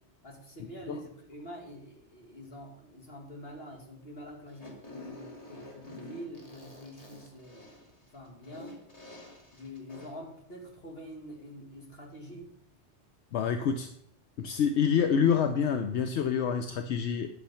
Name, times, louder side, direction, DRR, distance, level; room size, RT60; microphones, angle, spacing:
voice 1, 0.2-7.9 8.1-8.8 9.5-12.5, equal, 55° left, 0 dB, 2.6 m, -46 dB
Fart, 4.5-10.3, left 1 dB, 30° left, 2.5 m, -49 dB
voice 2, 13.3-13.9 14.4-17.3, left 7 dB, 75° left, 7 dB, 1.0 m, -27 dB
12.0 x 7.0 x 5.7 m, 0.73 s
omnidirectional pair, 1.2 m